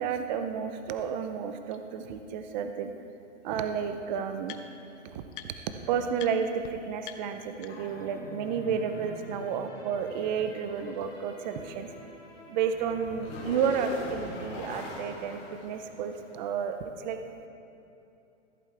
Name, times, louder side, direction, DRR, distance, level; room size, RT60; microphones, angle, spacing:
voice 1, 0.0-2.9 3.4-4.5 5.0-5.2 5.9-11.9 12.5-17.2, right 7 dB, 40° right, 7 dB, 0.6 m, -31 dB
sound 1, 1.0-1.1 1.7-1.8 3.1-3.2 3.4-4.9 5.3-5.8 6.1-6.3 6.6-6.7 7.0-8.0, left 11 dB, 45° left, 0.7 m, -47 dB
sound 2, 7.7-16.4, left 1 dB, 30° left, 2.4 m, -43 dB
14.5 x 8.1 x 3.3 m, 2.8 s
hypercardioid pair, 140°, 37 cm